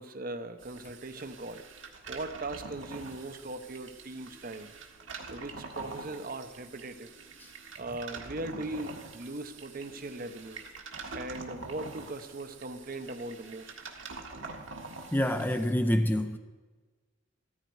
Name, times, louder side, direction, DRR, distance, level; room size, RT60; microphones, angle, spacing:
voice 1, 0.0-1.6 2.1-4.7 5.3-7.1 7.8-10.6 11.1-13.7, right 2 dB, 40° right, 0.8 m, -39 dB
sound 1, 0.6-15.7, right 3 dB, 60° right, 1.6 m, -45 dB
voice 2, 15.1-16.4, left 1 dB, 10° left, 0.5 m, -26 dB
14.5 x 13.5 x 4.7 m
head